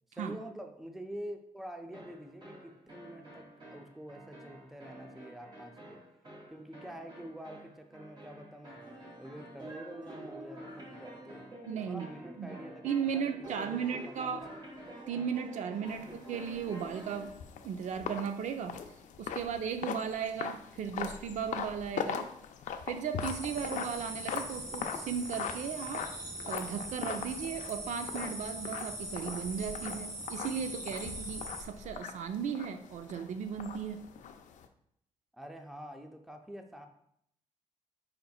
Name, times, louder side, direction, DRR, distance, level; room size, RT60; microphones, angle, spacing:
voice 1, 0.1-3.4 3.7-6.0 6.5-8.8 9.2-13.3 13.6-14.4 35.3-36.9, right 1 dB, ahead, 4 dB, 0.5 m, -47 dB
sound 1, 1.9-17.4, right 1 dB, 40° right, 1.6 m, -48 dB
voice 2, 11.7-12.1 12.4-12.5 12.8-14.5 15.1-17.4 17.6-18.8 19.2-22.3 22.9-26.1 26.4-34.0, right 7 dB, 70° right, 7 dB, 0.4 m, -36 dB
sound 2, 15.9-34.7, left 7 dB, 80° left, 0.4 m, -41 dB
sound 3, 23.2-31.6, right 1 dB, 20° right, 1.9 m, -42 dB
5.1 x 4.2 x 2.3 m, 0.71 s
cardioid pair, 110°, 13 cm